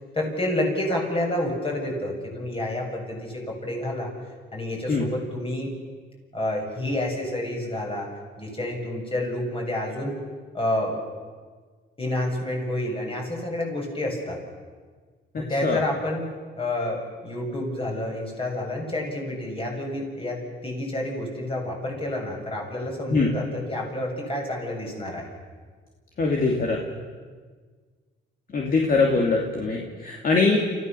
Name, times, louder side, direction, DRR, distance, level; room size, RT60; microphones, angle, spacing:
voice 1, 0.1-4.1 4.5-5.7 6.3-8.1 8.4-10.1 10.5-11.0 12.0-14.4 15.4-16.2 16.6-25.3, left 1 dB, 25° left, 0 dB, 7.6 m, -29 dB
voice 2, 15.3-15.8 23.1-23.3 26.2-26.8 28.5-30.6, left 4 dB, 45° left, 0 dB, 2.9 m, -22 dB
29.5 x 15.5 x 7.1 m, 1.5 s
cardioid pair, 90°, 20 cm